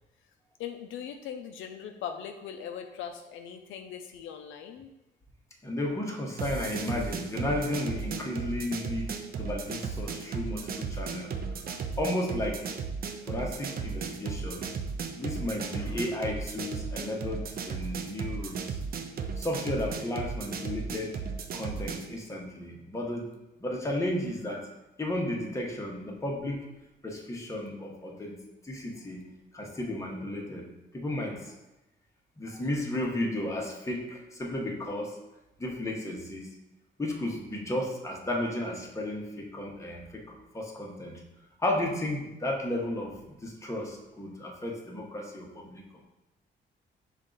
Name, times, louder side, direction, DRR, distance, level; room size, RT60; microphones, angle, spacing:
voice 1, 0.6-4.9 15.7-16.0, left 8 dB, 80° left, 5 dB, 0.4 m, -40 dB
voice 2, 5.6-11.3 12.0-12.7 13.3-14.7 15.1-18.8 19.4-21.2 21.5-23.3 23.6-24.7 25.0-26.7 27.0-28.4 28.6-29.2 29.5-30.7 30.9-31.5 32.4-35.2 35.6-36.5 37.0-41.2 41.6-43.1 43.4-46.0, left 1 dB, 15° left, -1 dB, 1.0 m, -33 dB
sound 1, 6.4-22.1, right 5 dB, 50° right, 0.5 m, -35 dB
5.4 x 2.4 x 3.8 m, 0.98 s
cardioid pair, 90°, 20 cm